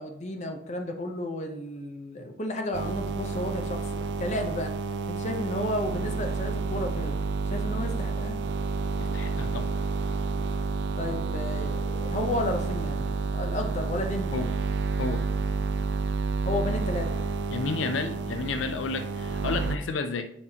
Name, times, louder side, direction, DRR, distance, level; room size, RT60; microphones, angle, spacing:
voice 1, 0.0-4.7 5.1-7.2 7.5-8.4 11.0-14.4 16.5-17.2, left 1 dB, 35° left, 0.7 m, -32 dB
sound 1, 2.7-19.8, right 4 dB, 65° right, 0.3 m, -30 dB
voice 2, 9.0-9.8 14.3-14.5 15.0-15.3 17.5-20.3, left 4 dB, 85° left, 0.4 m, -31 dB
7.0 x 4.9 x 2.8 m
head